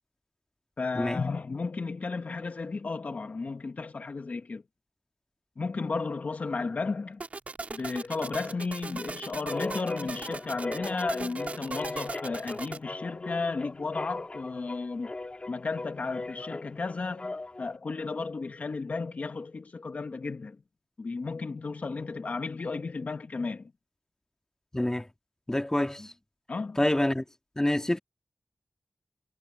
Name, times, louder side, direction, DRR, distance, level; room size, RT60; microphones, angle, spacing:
voice 1, 0.8-4.6 5.6-7.2 7.7-15.1 15.5-20.6 21.0-23.7 26.5-26.8, left 4 dB, 65° left, 1.5 m, -34 dB
sound 1, 7.2-12.8, right 3 dB, 65° right, 2.3 m, -39 dB
sound 2, 9.5-17.7, left 2 dB, 45° left, 2.9 m, -38 dB
voice 2, 24.7-25.1 25.5-26.1 26.8-27.2 27.6-28.0, left 1 dB, 20° left, 2.2 m, -27 dB
cardioid pair, 40°, 3 cm